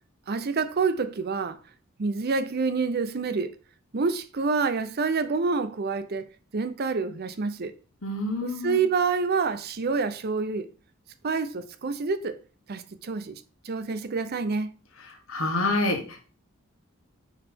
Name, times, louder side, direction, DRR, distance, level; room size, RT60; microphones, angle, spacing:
voice 1, 0.3-1.6 2.0-3.5 3.9-6.3 6.5-7.7 8.4-10.7 11.2-12.4 12.7-14.7, right 4 dB, 50° right, 0.6 m, -27 dB
voice 2, 8.0-8.8 15.3-16.3, left 2 dB, 75° left, 1.4 m, -27 dB
5.5 x 4.1 x 4.3 m
head